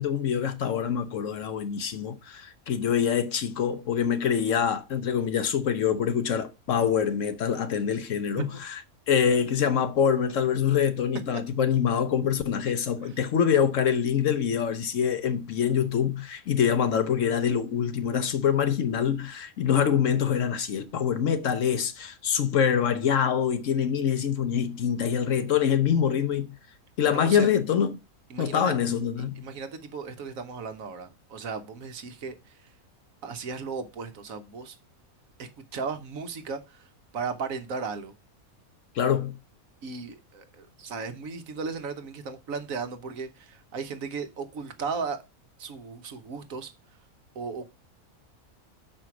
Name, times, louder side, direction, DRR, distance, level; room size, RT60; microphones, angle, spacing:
voice 1, 0.0-8.8 9.1-26.5 27.0-28.0 28.4-29.4 38.9-39.4, left 8 dB, 60° left, 1.1 m, -25 dB
voice 2, 27.1-27.5 28.3-28.7 29.2-32.7 33.2-34.8 35.4-36.9 37.1-38.1 39.8-45.2 45.6-46.7 47.3-47.7, right 5 dB, 65° right, 1.4 m, -36 dB
6.2 x 5.0 x 5.9 m
omnidirectional pair, 1.6 m